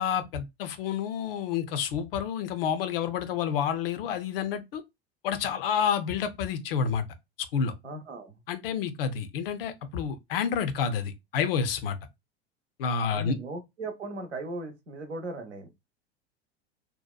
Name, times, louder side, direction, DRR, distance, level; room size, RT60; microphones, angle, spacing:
voice 1, 0.0-4.8 5.2-7.0 7.5-7.7 8.5-12.0 12.8-13.4, left 7 dB, 60° left, 0.5 m, -29 dB
voice 2, 7.8-8.4 13.1-15.7, right 2 dB, 85° right, 0.7 m, -38 dB
2.8 x 2.1 x 2.2 m
figure-of-eight pair, 85°, 34 cm